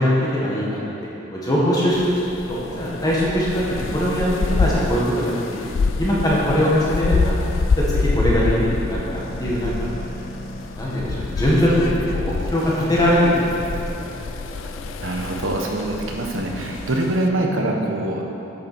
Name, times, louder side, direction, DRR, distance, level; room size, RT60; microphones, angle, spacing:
voice 1, 0.0-2.2 2.5-7.4 7.8-9.9 10.8-11.8 12.1-14.1 17.5-17.6, equal, 20° left, -6 dB, 1.7 m, -21 dB
sound 1, 1.9-17.3, left 4 dB, 85° left, 0.4 m, -27 dB
sound 2, 9.1-17.1, equal, 40° left, 1.5 m, -40 dB
voice 2, 15.0-18.2, right 1 dB, 85° right, 1 dB, 1.1 m, -24 dB
8.2 x 6.3 x 6.1 m, 2.9 s
head